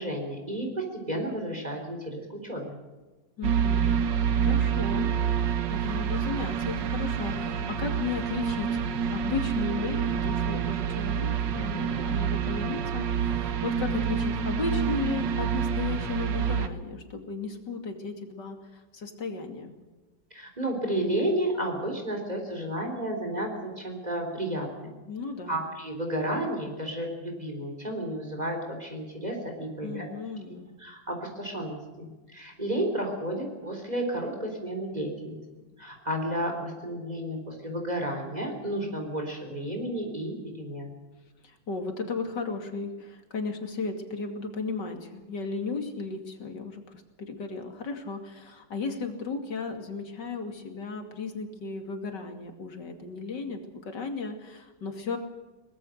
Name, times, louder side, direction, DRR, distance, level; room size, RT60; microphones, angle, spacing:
voice 1, 0.0-2.8 20.3-25.0 25.5-30.1 30.5-35.4 35.8-41.0, right 1 dB, 20° right, 2 dB, 3.9 m, -32 dB
voice 2, 3.4-4.0 4.3-8.8 9.1-19.7 25.1-25.6 29.8-30.7 41.4-55.2, left 4 dB, 65° left, 5 dB, 3.1 m, -35 dB
sound 1, 3.4-16.7, right 7 dB, 70° right, 1.8 m, -27 dB
22.5 x 20.0 x 6.6 m, 1.2 s
omnidirectional pair, 2.0 m